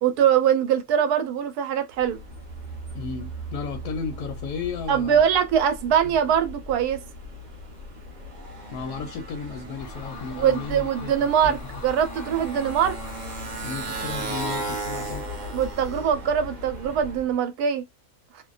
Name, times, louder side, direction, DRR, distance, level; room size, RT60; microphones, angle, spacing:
voice 1, 0.0-2.2 4.9-7.0 10.3-13.0 15.5-17.8, right 8 dB, 85° right, 1.1 m, -22 dB
Motorcycle, 2.0-17.3, right 1 dB, 45° right, 0.6 m, -36 dB
voice 2, 2.9-5.3 8.7-11.8 13.6-15.3, left 5 dB, 70° left, 0.9 m, -34 dB
sound 1, 9.8-16.0, left 2 dB, 55° left, 0.6 m, -43 dB
2.6 x 2.2 x 2.3 m
omnidirectional pair, 1.6 m